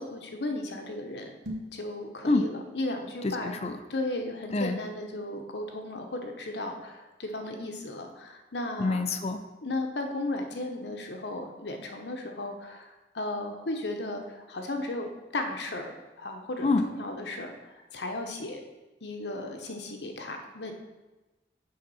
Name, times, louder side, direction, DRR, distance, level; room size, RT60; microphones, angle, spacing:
voice 1, 0.0-1.3 1.7-3.6 3.9-9.0 9.6-15.9 16.2-18.6 19.0-20.7, left 2 dB, 80° left, 4 dB, 0.9 m, -35 dB
sound 1, 1.3-1.9, equal, 85° right, 1.3 m, -38 dB
voice 2, 3.2-3.8 4.5-4.8 8.8-9.4 16.6-16.9, left 3 dB, 35° left, 8 dB, 0.5 m, -26 dB
7.9 x 3.8 x 5.6 m, 1.1 s
head